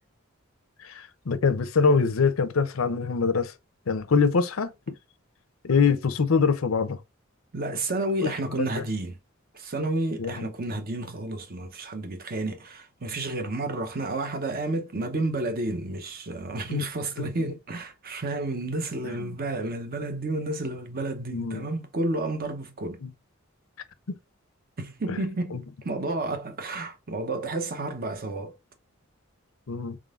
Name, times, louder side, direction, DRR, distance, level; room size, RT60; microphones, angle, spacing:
voice 1, 0.8-3.5 3.9-4.7 5.6-7.0 8.2-8.3 8.6-8.8 10.2-10.5 16.7-16.8 17.2-17.3 19.0-19.3 21.3-21.7 23.0-23.1 24.1-24.2 25.1-25.2 25.5-25.6 29.7-30.0, left 5 dB, 85° left, 0.6 m, -24 dB
voice 2, 7.5-9.2 9.5-23.0 24.8-28.6, right 2 dB, 45° right, 0.8 m, -31 dB
3.7 x 3.7 x 2.4 m
head